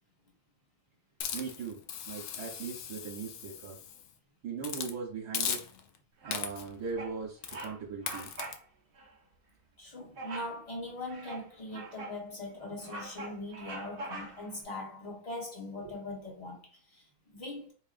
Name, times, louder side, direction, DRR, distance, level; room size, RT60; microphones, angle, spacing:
Hiss, 1.2-4.1 4.6-4.9 5.3-6.0 6.3-6.8 7.4-7.7 8.1-8.5, left 8 dB, 80° left, 1.1 m, -38 dB
voice 1, 1.3-3.8 4.4-5.6 6.2-8.3, right 5 dB, 75° right, 1.3 m, -39 dB
Bird vocalization bird call bird song, 6.2-6.6 7.0-7.2 7.5-7.8 8.0-8.6 8.9-9.1 10.2-10.6 11.1-12.2 12.6-14.5, right 2 dB, 45° right, 0.8 m, -43 dB
voice 2, 9.8-17.7, left 2 dB, 25° left, 1.1 m, -41 dB
4.6 x 2.9 x 2.5 m
omnidirectional pair, 1.6 m